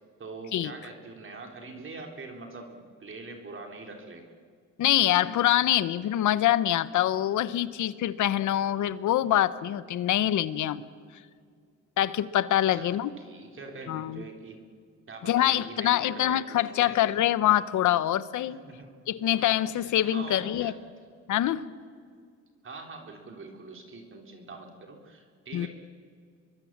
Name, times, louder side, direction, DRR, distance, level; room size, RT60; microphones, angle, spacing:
voice 1, 0.2-4.3 12.7-14.6 15.1-17.0 18.6-18.9 19.8-20.7 22.6-25.7, right 3 dB, 40° right, 3 dB, 3.4 m, -43 dB
voice 2, 4.8-10.8 12.0-13.1 13.9-14.2 15.2-18.6 19.1-20.7 21.3-21.7 25.5-25.7, left 12 dB, 75° left, 16 dB, 1.1 m, -25 dB
26.0 x 22.5 x 7.4 m, 2.1 s
cardioid pair, 90°, 30 cm